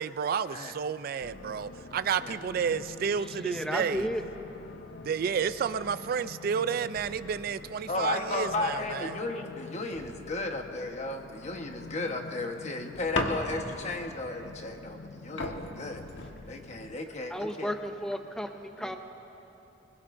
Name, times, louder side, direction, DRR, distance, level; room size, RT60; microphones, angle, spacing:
voice 1, 0.0-4.1 5.0-9.2, right 7 dB, 55° right, 14 dB, 0.3 m, -31 dB
sound 1, 1.2-17.0, left 3 dB, 60° left, 0.4 m, -47 dB
voice 2, 3.4-4.2 17.3-19.0, equal, 5° left, 5 dB, 0.6 m, -33 dB
voice 3, 7.9-16.0 16.5-17.7 18.8-19.0, left 2 dB, 40° left, 3 dB, 1.2 m, -34 dB
sound 2, 13.1-13.9 15.0-15.1 15.4-16.9 17.6-18.0, left 2 dB, 90° left, 1.4 m, -34 dB
25.0 x 21.5 x 2.6 m, 3.0 s
head